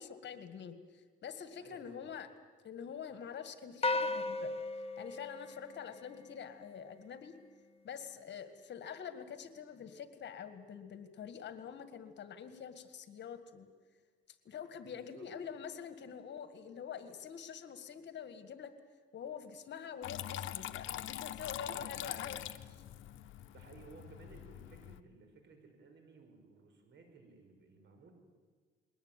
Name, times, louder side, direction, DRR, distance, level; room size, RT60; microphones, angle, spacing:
voice 1, 0.0-2.3 2.6-4.5 5.0-7.3 7.8-13.7 14.5-18.7 19.1-22.5, left 7 dB, 60° left, 10 dB, 1.9 m, -46 dB
voice 2, 1.6-2.1 14.9-15.5 21.6-21.9 23.5-28.1, right 4 dB, 65° right, 5 dB, 5.4 m, -57 dB
sound 1, 3.8-6.4, left 2 dB, 30° left, 1.0 m, -36 dB
Water tap faucet / Trickle dribble, 20.0-25.0, left 12 dB, 80° left, 0.9 m, -43 dB
21.5 x 19.0 x 9.0 m, 1.5 s
cardioid pair, 90°, 20 cm